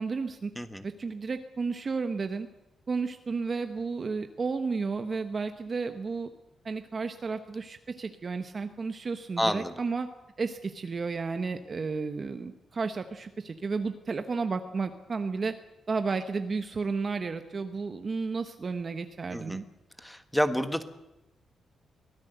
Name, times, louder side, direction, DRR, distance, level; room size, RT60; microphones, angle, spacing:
voice 1, 0.0-0.5 0.8-2.5 2.9-6.3 6.6-10.1 10.4-15.5 15.9-19.6, right 4 dB, 30° right, 8 dB, 1.2 m, -32 dB
voice 2, 9.4-9.7 19.3-19.6 20.0-20.8, equal, 5° left, 10 dB, 1.5 m, -28 dB
24.0 x 17.5 x 8.1 m, 0.94 s
wide cardioid pair, 175°, 0 cm